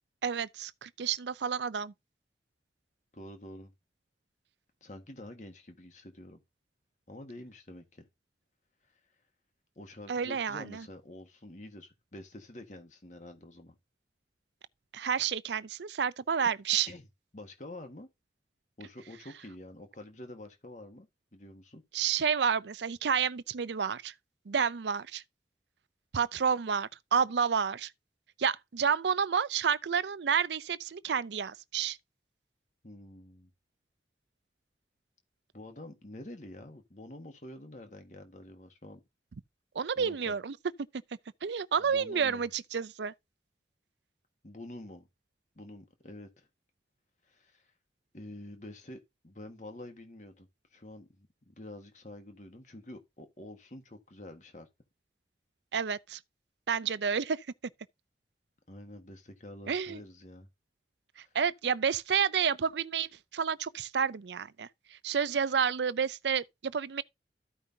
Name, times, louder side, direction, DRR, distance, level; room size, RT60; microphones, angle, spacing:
voice 1, 0.2-1.9 10.1-10.8 14.9-16.9 21.9-24.1 24.5-25.2 26.1-27.9 28.4-32.0 39.8-40.6 41.4-43.1 55.7-56.2 56.7-57.4 59.7-60.0 61.3-64.7 65.0-67.0, right 7 dB, 85° right, 0.5 m, -30 dB
voice 2, 3.1-3.7 4.8-6.4 7.1-8.1 9.7-13.7 16.8-17.0 17.3-18.1 18.8-21.8 32.8-33.5 35.5-39.0 39.9-40.3 41.8-42.4 44.4-45.1 45.5-46.5 47.3-47.6 48.1-54.7 58.7-60.5 61.2-61.3, left 1 dB, 45° left, 1.5 m, -48 dB
14.0 x 5.4 x 2.8 m
head